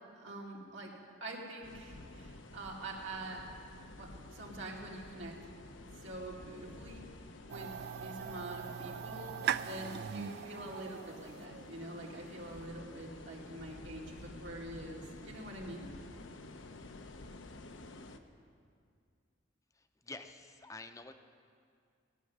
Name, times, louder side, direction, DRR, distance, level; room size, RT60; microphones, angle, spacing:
voice 1, 0.1-0.9 1.2-3.4 4.0-5.4 6.0-7.1 7.5-9.3 9.6-15.9, right 1 dB, 80° right, -2 dB, 2.3 m, -45 dB
sound 1, 1.6-18.2, left 2 dB, 80° left, 0.8 m, -51 dB
sound 2, 7.5-12.5, right 8 dB, 60° right, 0.3 m, -40 dB
voice 2, 19.7-21.1, left 2 dB, 15° left, 7 dB, 0.7 m, -48 dB
17.0 x 6.3 x 9.4 m, 2.2 s
head